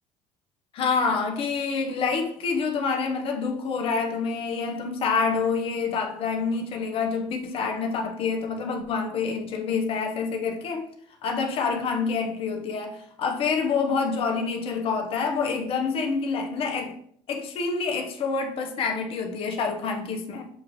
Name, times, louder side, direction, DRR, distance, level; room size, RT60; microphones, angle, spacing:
voice 1, 0.7-10.9 11.2-17.0 17.3-20.5, left 5 dB, 50° left, 0.7 m, -27 dB
6.5 x 2.5 x 3.0 m
supercardioid pair, 80°, 12 cm